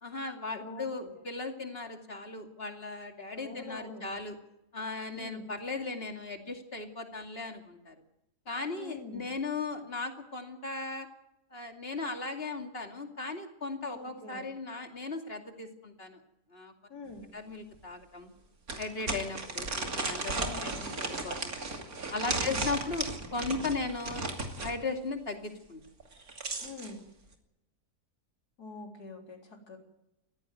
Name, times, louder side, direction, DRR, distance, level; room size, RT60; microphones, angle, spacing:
voice 1, 0.0-4.4 4.7-8.0 8.5-11.1 11.5-16.2 16.5-16.7 17.3-18.3 18.8-21.5 22.1-23.1 23.3-24.3 24.6-25.8, left 3 dB, 40° left, 4 dB, 2.8 m, -37 dB
voice 2, 0.5-1.2 3.3-4.0 5.1-5.5 8.8-9.3 13.9-14.5 16.9-17.3 20.3-21.0 22.3-22.6 26.6-27.0 28.6-29.8, left 3 dB, 85° left, 2 dB, 4.3 m, -45 dB
sound 1, 17.2-17.3 17.7-17.8 18.7-24.8 26.0-26.9, right 3 dB, 65° right, 3.1 m, -35 dB
20.5 x 15.5 x 9.2 m, 0.92 s
omnidirectional pair, 1.6 m